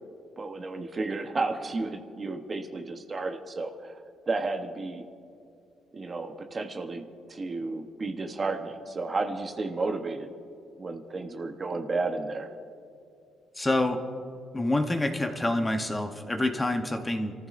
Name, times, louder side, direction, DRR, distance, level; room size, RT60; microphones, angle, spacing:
voice 1, 0.4-4.0 4.3-5.0 5.9-10.3 10.8-12.5, right 3 dB, 25° right, 6 dB, 0.8 m, -32 dB
voice 2, 13.6-14.0 14.5-17.3, left 1 dB, 10° left, 5 dB, 0.8 m, -27 dB
28.5 x 14.5 x 2.5 m, 2.5 s
cardioid pair, 150°, 0 cm